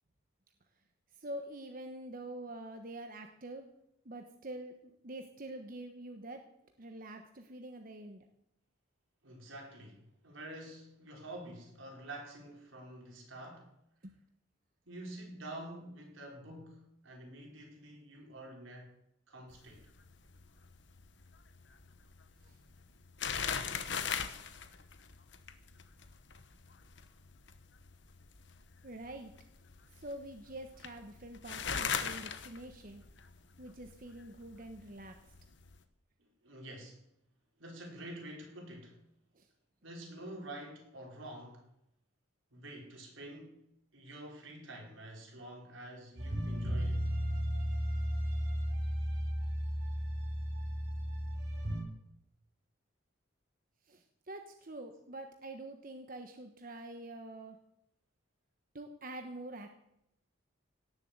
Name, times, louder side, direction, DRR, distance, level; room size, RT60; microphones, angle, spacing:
voice 1, 1.1-3.7 4.0-6.4 6.8-8.2 14.0-14.1 22.4-22.6 28.8-29.3 29.9-33.0 33.6-35.1 39.3-39.5 53.8-57.6 58.7-59.7, right 1 dB, 45° right, 5 dB, 1.1 m, -46 dB
voice 2, 9.2-13.7 14.8-18.9 19.3-19.9 36.2-37.0 37.6-39.0 39.8-41.7 42.5-43.6 43.9-47.1, right 1 dB, 85° right, 0 dB, 5.0 m, -48 dB
sound 1, 19.5-35.8, left 6 dB, 60° left, 1.1 m, -42 dB
sound 2, 46.2-51.8, equal, 60° right, 6.6 m, -34 dB
17.5 x 7.3 x 8.1 m, 0.80 s
head